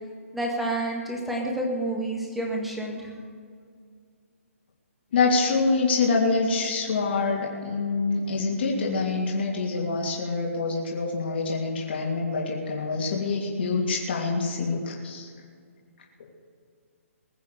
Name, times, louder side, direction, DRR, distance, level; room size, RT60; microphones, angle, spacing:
voice 1, 0.3-3.1, right 1 dB, ahead, -1 dB, 1.8 m, -29 dB
voice 2, 5.1-15.3, left 4 dB, 45° left, -2 dB, 2.9 m, -26 dB
20.5 x 7.1 x 6.7 m, 2.1 s
hypercardioid pair, 160°, 8 cm